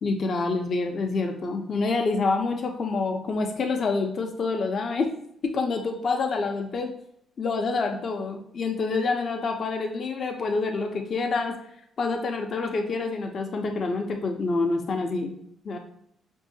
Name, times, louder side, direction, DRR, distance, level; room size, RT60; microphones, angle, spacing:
voice 1, 0.0-5.1 5.4-6.9 7.4-11.5 12.0-15.3 15.6-15.8, left 3 dB, 50° left, 3 dB, 0.6 m, -27 dB
5.4 x 2.7 x 2.7 m, 0.70 s
cardioid pair, 90°, 0 cm